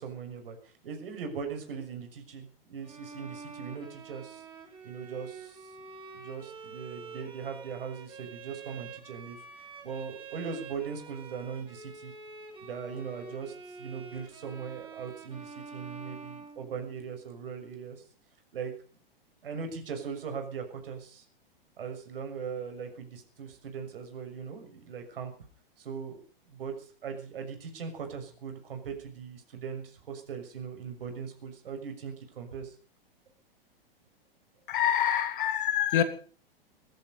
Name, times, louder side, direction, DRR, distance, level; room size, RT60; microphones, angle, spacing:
voice 1, 0.0-4.4 4.8-5.7 6.1-12.1 12.6-18.0 18.5-18.7 19.4-21.2 21.8-25.3 25.8-26.2 26.4-32.7, right 6 dB, 70° right, 6.6 m, -40 dB
Bowed string instrument, 2.8-17.1, right 4 dB, 15° right, 5.6 m, -47 dB
voice 2, 34.7-36.0, left 10 dB, 60° left, 3.1 m, -26 dB
19.0 x 13.5 x 5.6 m
hypercardioid pair, 115°, 29 cm